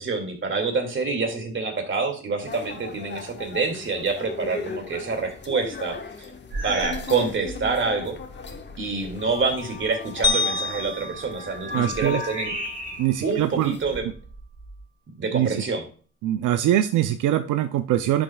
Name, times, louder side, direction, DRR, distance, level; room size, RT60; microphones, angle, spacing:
voice 1, 0.0-6.0 6.6-8.2 8.8-12.5 13.2-14.1 15.2-15.8, right 4 dB, 40° right, 5 dB, 2.3 m, -27 dB
sound 1, 2.4-14.0, left 5 dB, 35° left, 1.3 m, -37 dB
sound 2, 6.5-7.1 7.4-7.8 8.4-8.5 10.9-13.3 13.8-14.8, right 2 dB, 60° right, 4.5 m, -35 dB
sound 3, 10.2-12.6, left 3 dB, 15° left, 1.2 m, -28 dB
voice 2, 11.7-12.2 13.0-13.8 15.3-15.6 16.2-18.2, right 12 dB, 80° right, 10 dB, 0.6 m, -23 dB
10.5 x 7.2 x 2.3 m, 0.41 s
cardioid pair, 90°, 30 cm